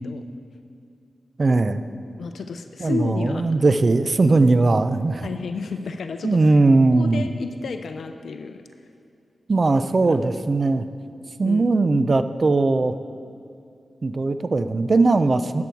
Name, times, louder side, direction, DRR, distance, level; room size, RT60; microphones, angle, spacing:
voice 1, 1.4-1.8 2.8-5.3 6.2-7.2 9.5-10.9 11.4-13.0 14.0-15.6, right 3 dB, 45° right, 11 dB, 0.5 m, -19 dB
voice 2, 2.2-3.6 4.3-4.4 5.2-6.6 6.9-8.6 11.4-11.7, left 4 dB, 80° left, 7 dB, 0.5 m, -32 dB
13.0 x 9.4 x 4.6 m, 2.5 s
cardioid pair, 60°, 0 cm